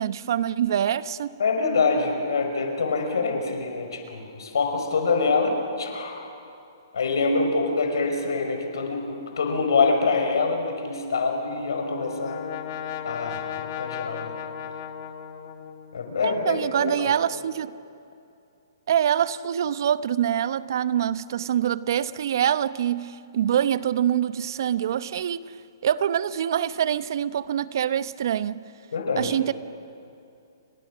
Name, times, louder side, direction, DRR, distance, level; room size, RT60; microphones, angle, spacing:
voice 1, 0.0-1.3 16.2-17.7 18.9-25.5 25.8-28.6 29.2-29.5, right 9 dB, 60° right, 0.9 m, -25 dB
voice 2, 1.4-6.3 6.9-12.4 13.0-14.3 15.9-17.1 28.9-29.3, left 4 dB, 75° left, 5.5 m, -25 dB
Brass instrument, 11.4-16.2, left 9 dB, 45° left, 1.9 m, -36 dB
30.0 x 26.0 x 6.3 m
hypercardioid pair, 140°, 2 cm